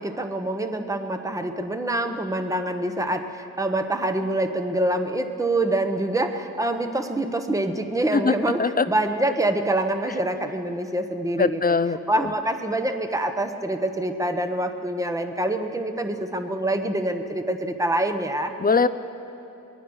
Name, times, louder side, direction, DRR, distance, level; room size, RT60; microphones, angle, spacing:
voice 1, 0.0-11.8 12.1-18.5, right 1 dB, 10° right, 6 dB, 1.1 m, -26 dB
voice 2, 8.1-8.9 11.4-12.3 18.6-18.9, left 4 dB, 30° left, 13 dB, 0.7 m, -22 dB
24.0 x 21.0 x 6.3 m, 2.9 s
wide cardioid pair, 125°, 32 cm